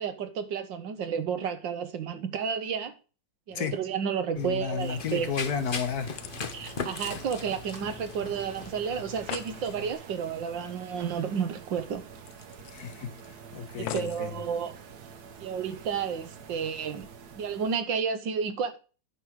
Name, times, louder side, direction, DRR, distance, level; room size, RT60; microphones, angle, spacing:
voice 1, 0.0-2.9 3.5-5.3 6.5-12.0 13.8-14.8 15.4-17.1 17.3-18.8, right 7 dB, 75° right, 1.8 m, -31 dB
voice 2, 4.4-6.1 12.7-14.3, left 7 dB, 60° left, 1.4 m, -32 dB
Run, 4.4-9.9, left 5 dB, 40° left, 0.8 m, -39 dB
sound 1, 4.8-17.8, right 6 dB, 60° right, 1.6 m, -47 dB
sound 2, 5.5-8.1 8.4-8.5 8.8-8.9 9.1-9.6 11.1-11.2 11.5-11.6 12.3-13.3 13.9-14.3 15.0-15.1, left 12 dB, 80° left, 1.3 m, -43 dB
9.7 x 5.1 x 6.3 m
omnidirectional pair, 2.1 m